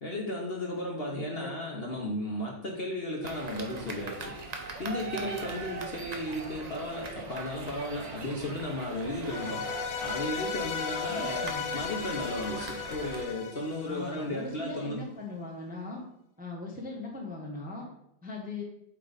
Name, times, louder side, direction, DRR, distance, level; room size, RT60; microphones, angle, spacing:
voice 1, 0.0-9.7 10.0-15.0, left 1 dB, 45° left, -1 dB, 1.0 m, -35 dB
voice 2, 1.1-1.5 11.1-11.6 13.8-16.0 16.4-17.8 18.2-18.6, left 2 dB, 5° right, -1 dB, 0.8 m, -39 dB
sound 1, 3.2-13.2, right 3 dB, 85° right, 0.3 m, -41 dB
sound 2, 9.2-14.5, left 7 dB, 80° left, 1.3 m, -36 dB
8.4 x 3.3 x 4.0 m, 0.77 s
omnidirectional pair, 1.7 m